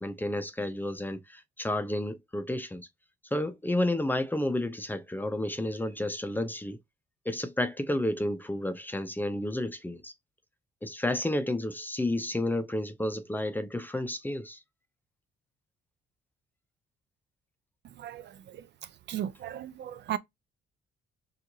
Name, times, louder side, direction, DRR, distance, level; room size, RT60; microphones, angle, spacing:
voice 1, 0.0-2.9 3.3-6.8 7.3-10.1 10.8-14.6, left 1 dB, 10° left, 0.5 m, -31 dB
voice 2, 18.0-18.6 19.1-20.2, right 10 dB, 65° right, 0.5 m, -36 dB
4.4 x 2.4 x 2.7 m
cardioid pair, 90°, 20 cm